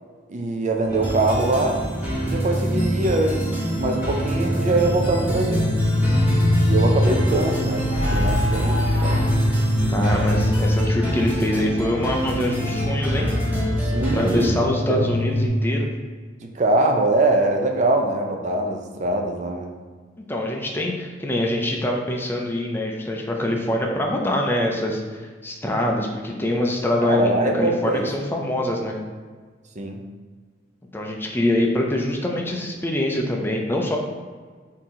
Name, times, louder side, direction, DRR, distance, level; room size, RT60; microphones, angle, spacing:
voice 1, 0.3-1.8 2.2-3.5 3.8-5.7 6.6-9.2 13.8-15.0 16.4-19.8 27.0-28.1 29.8-30.0, right 2 dB, 40° right, 3 dB, 0.5 m, -23 dB
sound 1, 0.8-15.5, left 1 dB, 45° left, 0.9 m, -24 dB
sound 2, 0.9-14.5, right 1 dB, 10° right, 1.0 m, -27 dB
sound 3, 7.3-9.4, left 1 dB, 70° left, 0.6 m, -27 dB
voice 2, 9.9-13.3 14.1-15.9 20.3-25.0 25.4-29.0 30.9-34.0, left 1 dB, 10° left, 0 dB, 0.4 m, -24 dB
4.3 x 2.7 x 3.6 m, 1.5 s
head